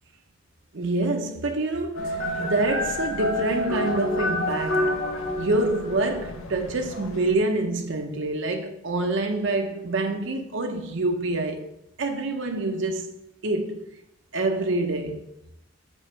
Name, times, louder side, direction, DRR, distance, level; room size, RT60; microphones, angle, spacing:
voice 1, 0.7-5.0 5.4-11.7 12.0-13.1 13.4-13.9 14.3-15.3, right 2 dB, 60° right, 0.7 m, -26 dB
sound 1, 1.9-7.4, left 1 dB, 90° left, 0.9 m, -29 dB
6.2 x 4.2 x 4.4 m
head